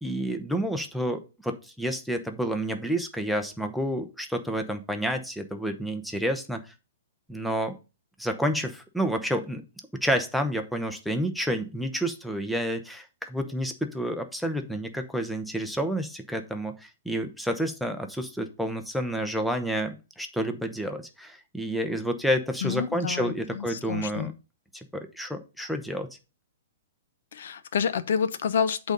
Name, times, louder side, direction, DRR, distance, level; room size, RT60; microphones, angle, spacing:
voice 1, 0.0-6.6 7.3-7.8 8.2-9.6 10.0-24.3 24.7-26.1, equal, ahead, 0.8 m, -29 dB
voice 2, 22.6-24.4 27.3-28.9, left 7 dB, 70° left, 0.8 m, -28 dB
8.1 x 3.9 x 5.2 m
hypercardioid pair, 155°, 0 cm